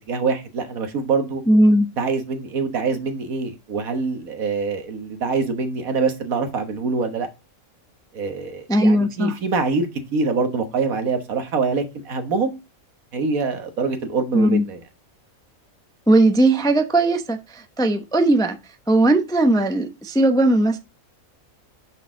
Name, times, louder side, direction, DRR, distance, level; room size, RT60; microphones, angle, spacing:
voice 1, 0.1-1.4 2.0-7.3 8.1-12.5 13.1-14.8, right 4 dB, 80° right, 1.7 m, -24 dB
voice 2, 1.5-1.9 8.7-9.3 14.3-14.6 16.1-18.6 18.9-20.8, right 1 dB, 5° left, 0.5 m, -18 dB
6.4 x 6.2 x 3.7 m
omnidirectional pair, 1.5 m